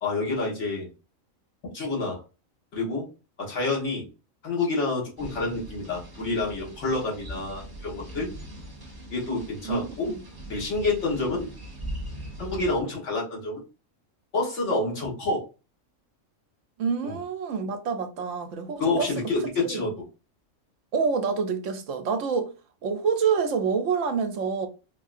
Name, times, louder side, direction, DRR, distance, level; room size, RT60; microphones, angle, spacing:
voice 1, 0.0-0.9 1.7-2.2 2.7-3.1 3.4-4.1 4.4-8.3 9.1-10.2 10.5-11.5 12.4-13.6 14.3-15.4 17.0-17.2 18.8-20.1, left 3 dB, 60° left, 1.6 m, -28 dB
sound 1, 5.2-12.8, right 1 dB, 20° right, 0.9 m, -40 dB
voice 2, 9.6-10.1 16.8-19.1 19.7-19.8 20.9-22.5 22.8-24.7, right 5 dB, 70° right, 0.9 m, -27 dB
4.3 x 2.7 x 2.4 m
omnidirectional pair, 1.4 m